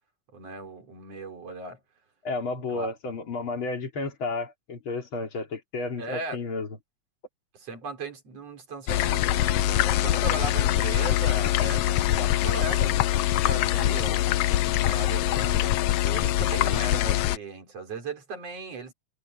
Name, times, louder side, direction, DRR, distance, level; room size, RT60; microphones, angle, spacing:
voice 1, 0.3-1.8 2.7-2.9 6.0-6.4 7.5-13.0 13.3-14.3 14.7-18.9, right 3 dB, 50° right, 4.8 m, -37 dB
voice 2, 2.2-6.7, left 3 dB, 40° left, 3.3 m, -32 dB
sound 1, 8.9-17.4, left 13 dB, 80° left, 1.4 m, -24 dB
omnidirectional pair, 3.6 m